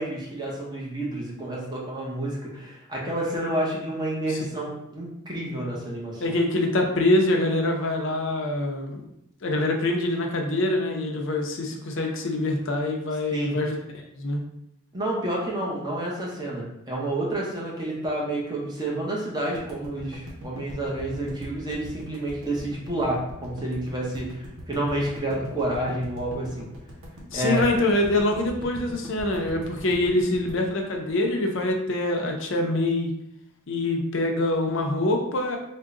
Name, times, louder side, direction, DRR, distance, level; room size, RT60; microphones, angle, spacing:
voice 1, 0.0-6.4 13.3-13.6 14.9-26.7 27.3-27.6, right 1 dB, 20° right, -4 dB, 0.8 m, -29 dB
voice 2, 6.2-9.1 9.4-14.4 27.3-33.1 33.7-35.6, left 2 dB, 65° left, 2 dB, 0.6 m, -25 dB
sound 1, 19.5-31.7, equal, 90° right, 0.8 m, -41 dB
3.6 x 2.2 x 3.7 m, 0.80 s
head